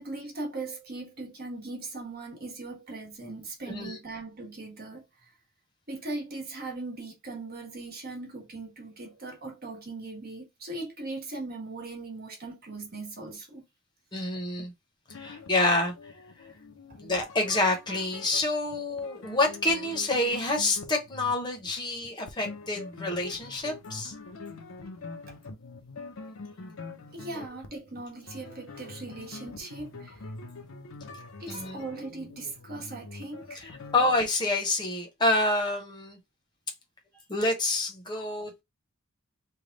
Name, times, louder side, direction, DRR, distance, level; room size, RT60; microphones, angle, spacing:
voice 1, 0.0-5.4 5.9-13.6 14.2-14.3 16.9-17.0 25.3-25.4 27.1-30.2 31.4-33.7 37.1-37.2, right 2 dB, 45° right, 1.2 m, -39 dB
voice 2, 3.7-4.0 14.1-14.7 15.1-15.9 17.0-24.1 31.5-31.8 33.6-36.2 37.3-38.6, left 2 dB, 20° left, 0.8 m, -28 dB
sound 1, 15.1-34.3, left 3 dB, 75° left, 0.6 m, -44 dB
3.3 x 2.3 x 3.8 m
head